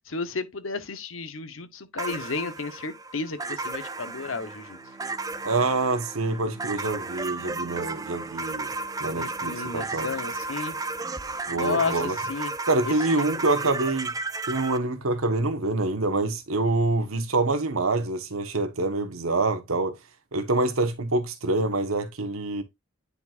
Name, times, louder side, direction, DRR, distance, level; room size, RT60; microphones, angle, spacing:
voice 1, 0.1-4.8 9.1-10.8 11.5-12.5 12.9-13.2, left 4 dB, 70° left, 1.0 m, -32 dB
sound 1, 2.0-14.8, right 3 dB, 15° right, 0.5 m, -34 dB
Bowed string instrument, 3.5-11.3, right 3 dB, 5° left, 2.3 m, -49 dB
voice 2, 5.4-8.7 9.0-10.2 11.5-12.2 12.7-14.1 14.5-20.0 20.3-22.6, right 2 dB, 80° right, 1.3 m, -26 dB
9.9 x 4.5 x 2.5 m
head